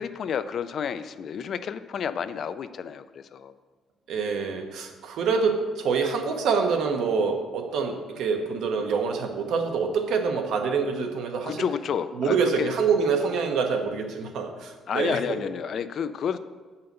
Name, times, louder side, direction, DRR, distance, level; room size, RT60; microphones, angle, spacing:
voice 1, 0.0-3.5 11.4-12.7 14.9-16.4, left 7 dB, 50° left, 12 dB, 0.4 m, -30 dB
voice 2, 4.1-11.6 12.2-15.4, right 5 dB, 70° right, 4 dB, 1.1 m, -26 dB
7.8 x 5.6 x 6.7 m, 1.4 s
cardioid pair, 170°, 0 cm